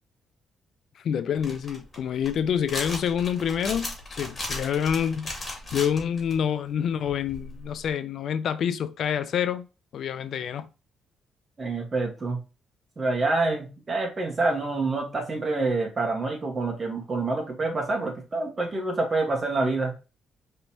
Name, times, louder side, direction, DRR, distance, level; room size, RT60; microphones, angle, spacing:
voice 1, 1.0-9.7 9.9-10.7, left 8 dB, 65° left, 0.4 m, -27 dB
sound 1, 1.4-6.3 7.1-7.9, left 2 dB, 25° left, 2.3 m, -36 dB
voice 2, 11.6-12.4 13.0-19.9, right 3 dB, 35° right, 1.6 m, -27 dB
5.2 x 3.4 x 2.9 m
cardioid pair, 90°, 0 cm